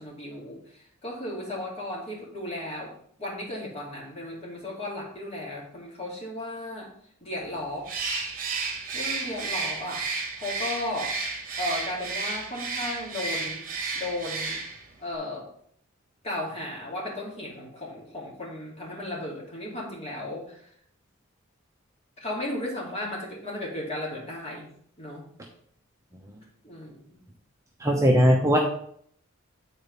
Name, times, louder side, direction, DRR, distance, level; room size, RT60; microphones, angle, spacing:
voice 1, 0.0-2.9 3.2-6.9 7.2-7.9 8.9-11.2 11.6-13.6 13.9-14.6 15.0-15.5 16.2-20.7 22.2-24.7 25.0-25.2 26.6-27.2, left 1 dB, 30° left, -3 dB, 2.4 m, -35 dB
Bird, 7.8-14.9, right 4 dB, 40° right, 1.2 m, -32 dB
voice 2, 27.8-28.6, equal, 15° right, 0 dB, 0.7 m, -19 dB
8.6 x 4.1 x 5.3 m, 0.65 s
head